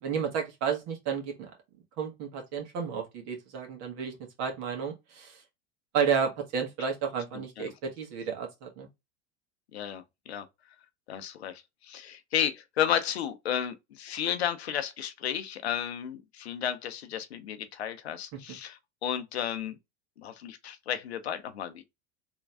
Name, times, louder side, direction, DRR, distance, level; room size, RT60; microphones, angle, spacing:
voice 1, 0.0-1.5 2.0-5.4 5.9-8.9, right 6 dB, 60° right, 1.7 m, -32 dB
voice 2, 7.3-7.7 9.7-10.5 11.1-19.8 20.2-21.8, left 9 dB, 85° left, 0.7 m, -33 dB
3.6 x 3.0 x 3.4 m
hypercardioid pair, 85°, 31 cm